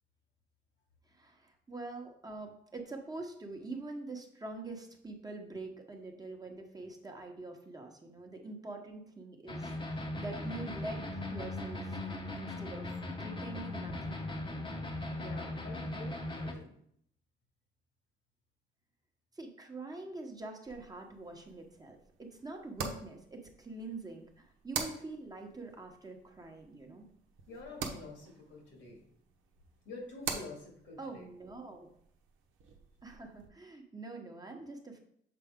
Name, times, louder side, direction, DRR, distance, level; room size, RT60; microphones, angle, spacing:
voice 1, 1.1-12.9 13.2-14.7 19.3-27.1 31.0-31.9 33.0-35.0, right 2 dB, 20° right, 2 dB, 1.0 m, -45 dB
sound 1, 9.5-16.5, left 1 dB, 25° left, 0.9 m, -39 dB
voice 2, 15.1-16.7 27.5-29.1 29.9-31.2, left 3 dB, 75° left, -1 dB, 2.1 m, -48 dB
sound 2, 20.6-33.5, right 6 dB, 85° right, 0.9 m, -46 dB
6.9 x 4.1 x 3.6 m, 0.68 s
cardioid pair, 90°, 20 cm